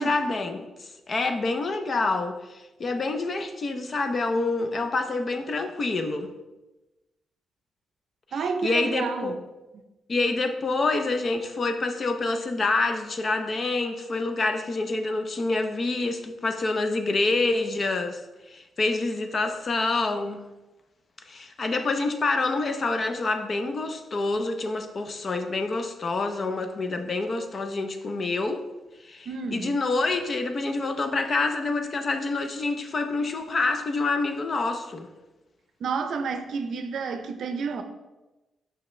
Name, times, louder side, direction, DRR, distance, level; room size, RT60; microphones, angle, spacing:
voice 1, 0.0-6.3 8.3-9.4 10.1-18.2 18.5-20.4 21.3-28.6 29.0-35.1, left 3 dB, 35° left, 0.5 m, -27 dB
voice 2, 8.3-9.4 29.3-29.7 35.8-37.8, right 5 dB, 60° right, 0.6 m, -30 dB
5.9 x 5.5 x 3.1 m
wide cardioid pair, 165°, 0 cm